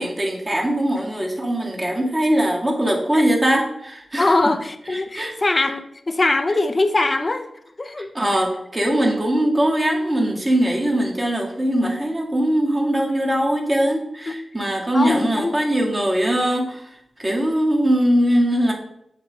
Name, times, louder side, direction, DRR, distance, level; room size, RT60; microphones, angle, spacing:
voice 1, 0.0-4.3 4.9-5.3 8.1-18.7, right 1 dB, 25° right, -1 dB, 1.8 m, -21 dB
voice 2, 4.2-7.5 7.8-8.1 14.3-14.4 14.9-15.5, left 2 dB, 35° left, 8 dB, 0.6 m, -21 dB
7.3 x 3.3 x 5.1 m, 0.78 s
cardioid pair, 50°, 0 cm